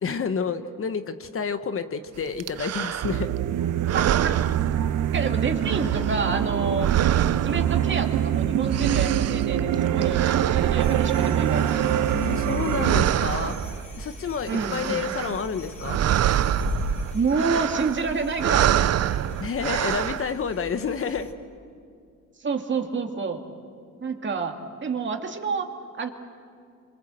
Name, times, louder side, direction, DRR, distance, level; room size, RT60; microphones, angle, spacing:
voice 1, 0.0-3.3 12.1-13.6 14.0-16.0 19.4-21.3, left 6 dB, 45° left, 9 dB, 1.3 m, -29 dB
sound 1, 2.4-3.4 3.8-5.3 5.6-8.3 8.5-12.5 12.8-14.0 14.4-15.5 15.7-20.3, right 11 dB, 55° right, 0.7 m, -27 dB
sound 2, 3.0-13.1, right 10 dB, 75° right, 1.1 m, -24 dB
voice 2, 3.9-4.4 5.1-6.9 7.4-12.0 14.5-15.0 17.1-18.9 20.2-20.3 22.4-23.4 24.0-25.7 26.0-26.1, right 4 dB, 40° right, 4 dB, 2.4 m, -28 dB
sound 3, 10.8-21.3, left 1 dB, 25° left, 3.7 m, -38 dB
27.0 x 25.0 x 7.8 m, 2.3 s
cardioid pair, 90°, 30 cm